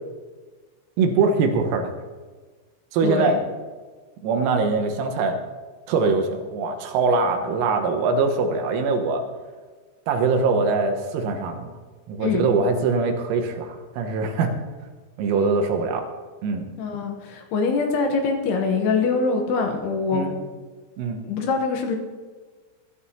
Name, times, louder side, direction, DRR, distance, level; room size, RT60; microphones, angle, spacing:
voice 1, 1.0-1.9 2.9-3.4 4.2-5.4 5.9-9.2 10.1-11.7 12.1-14.5 15.2-16.1 16.4-16.7 20.1-20.4 21.0-21.2, right 4 dB, 90° right, 4 dB, 4.1 m, -22 dB
voice 2, 3.0-3.4 12.2-12.5 16.8-20.3 21.2-22.0, left 4 dB, 75° left, 3 dB, 2.4 m, -24 dB
21.5 x 12.5 x 2.9 m, 1.4 s
omnidirectional pair, 6.0 m